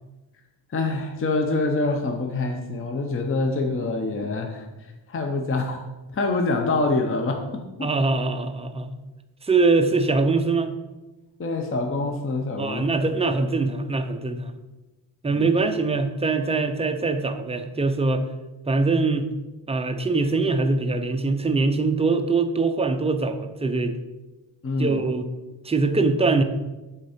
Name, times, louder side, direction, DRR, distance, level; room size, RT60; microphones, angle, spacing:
voice 1, 0.7-5.8 6.1-7.9 11.4-12.9 15.3-15.5 24.6-25.0, left 3 dB, 30° left, 3 dB, 0.6 m, -26 dB
voice 2, 7.8-8.9 9.4-10.7 12.6-14.5 15.2-18.2 18.7-19.3 19.7-23.9 24.8-25.3 25.6-26.4, right 3 dB, 15° right, 7 dB, 0.4 m, -23 dB
6.6 x 4.4 x 5.0 m, 1.1 s
wide cardioid pair, 155°, 47 cm